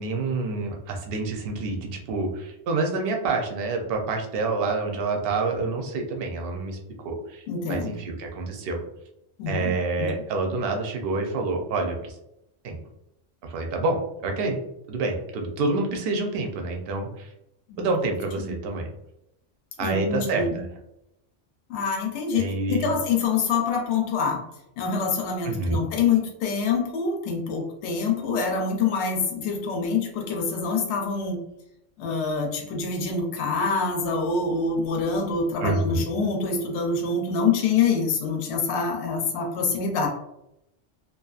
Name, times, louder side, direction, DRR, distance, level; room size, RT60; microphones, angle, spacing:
voice 1, 0.0-8.8 9.5-12.2 12.6-12.8 13.4-14.6 14.9-17.3 17.8-18.9 19.8-20.7 22.3-22.9 25.4-25.8 35.6-36.0, right 3 dB, 60° right, 2 dB, 0.7 m, -27 dB
voice 2, 7.5-7.9 9.4-10.1 17.7-17.9 18.4-18.5 19.8-20.6 21.7-24.4 24.8-31.4 32.0-40.1, left 5 dB, 70° left, 1 dB, 0.9 m, -26 dB
2.7 x 2.3 x 2.3 m, 0.84 s
omnidirectional pair, 1.2 m